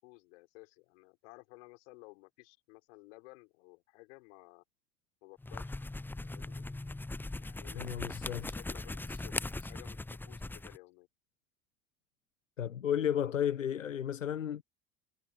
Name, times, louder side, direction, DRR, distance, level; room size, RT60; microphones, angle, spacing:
voice 1, 0.0-4.6 5.2-5.7 6.2-6.6 7.4-9.3 9.6-11.1 13.7-13.9, left 26 dB, 70° left, 5.3 m, -55 dB
sound 1, 5.4-10.8, left 2 dB, 5° left, 0.6 m, -40 dB
voice 2, 7.8-8.4 12.6-14.6, left 9 dB, 90° left, 1.1 m, -33 dB
hypercardioid pair, 65°, 37 cm